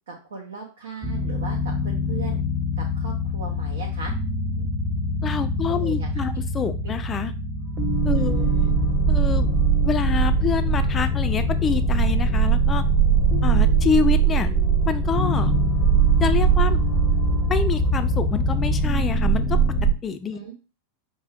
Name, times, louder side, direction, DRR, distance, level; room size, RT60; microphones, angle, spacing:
voice 1, 0.1-2.4 2.8-4.1 4.6-4.7 5.8-6.4 6.8-6.9 8.1-8.7 20.3-20.5, right 5 dB, 65° right, 0 dB, 0.7 m, -38 dB
sound 1, 1.0-19.9, right 3 dB, 10° right, 0.9 m, -22 dB
voice 2, 5.2-7.3 8.0-8.5 9.1-9.5 9.8-12.8 13.4-14.5 14.9-15.5 16.2-16.8 17.5-19.6 20.0-20.4, left 6 dB, 20° left, 10 dB, 0.4 m, -26 dB
5.3 x 2.2 x 3.3 m, 0.33 s
figure-of-eight pair, 90°, 0 cm